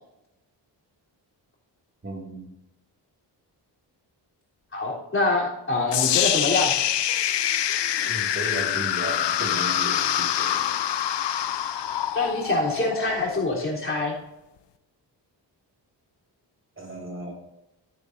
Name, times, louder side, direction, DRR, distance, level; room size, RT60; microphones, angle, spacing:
voice 1, 2.0-2.5 8.1-10.7 16.8-17.3, right 1 dB, 30° right, 0 dB, 2.3 m, -35 dB
voice 2, 4.7-6.7 11.8-11.9 12.1-14.1, left 2 dB, 30° left, -4 dB, 3.6 m, -25 dB
sound 1, 5.9-14.0, left 11 dB, 70° left, 0.8 m, -25 dB
14.0 x 9.7 x 2.7 m, 0.93 s
cardioid pair, 105°, 44 cm